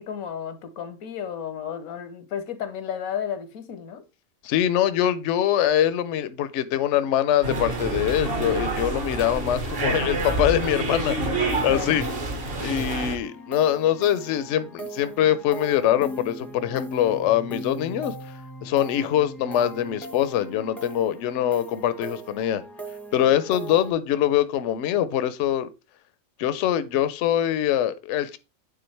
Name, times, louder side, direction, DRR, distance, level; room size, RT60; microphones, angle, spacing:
voice 1, 0.0-4.0 11.7-11.9, left 8 dB, 85° left, 1.2 m, -33 dB
voice 2, 4.4-12.0 12.6-18.1 18.6-22.6 23.1-25.7 26.4-28.4, left 11 dB, 65° left, 0.8 m, -23 dB
sound 1, 7.4-13.2, right 2 dB, 45° right, 1.3 m, -27 dB
sound 2, 10.9-23.9, equal, ahead, 0.7 m, -39 dB
9.1 x 3.7 x 3.2 m
omnidirectional pair, 1.4 m